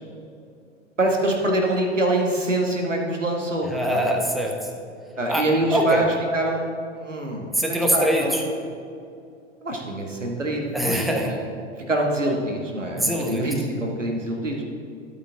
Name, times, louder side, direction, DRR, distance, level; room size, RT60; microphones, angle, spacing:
voice 1, 1.0-4.1 5.2-6.7 7.0-8.3 9.6-11.4 11.9-14.6, right 1 dB, 90° right, 1 dB, 1.5 m, -25 dB
voice 2, 3.7-4.7 5.3-6.0 7.5-8.4 10.7-11.4 13.0-13.4, equal, ahead, 1 dB, 1.1 m, -23 dB
12.0 x 8.0 x 3.9 m, 2.4 s
figure-of-eight pair, 90°, 36 cm